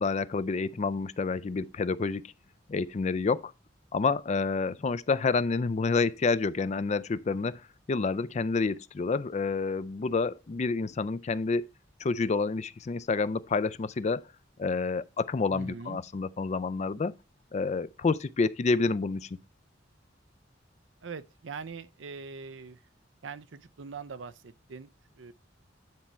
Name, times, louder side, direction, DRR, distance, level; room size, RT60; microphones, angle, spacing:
voice 1, 0.0-2.3 2.7-3.5 3.9-7.6 7.9-11.7 12.0-14.3 14.6-17.1 17.5-19.3, left 4 dB, 35° left, 0.4 m, -28 dB
voice 2, 15.5-16.0 21.0-22.8 23.2-25.3, right 5 dB, 85° right, 0.6 m, -42 dB
9.6 x 4.3 x 4.5 m
head